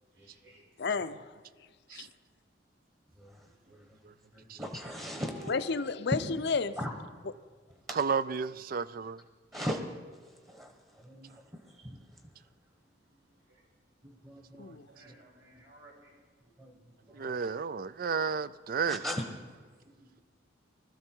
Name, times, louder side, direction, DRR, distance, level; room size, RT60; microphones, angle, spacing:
voice 1, 0.2-0.6 5.2-5.8 13.5-13.6 14.9-16.2, equal, 75° right, 5.5 m, -52 dB
voice 2, 0.8-1.2 1.9-2.1 5.5-6.8 7.2-7.3 14.6-14.9, left 4 dB, 60° left, 0.6 m, -31 dB
voice 3, 4.3-5.5 6.8-6.9 7.9-8.0 9.5-9.8 10.5-10.7 11.0-11.3 11.8-12.0 14.0-14.7 15.0-15.1 16.6-16.7 17.2-17.3 18.9-19.2 20.0-20.1, equal, 15° right, 1.2 m, -38 dB
voice 4, 7.9-9.2 17.1-19.0, right 5 dB, 50° right, 0.4 m, -32 dB
20.0 x 13.5 x 4.6 m
head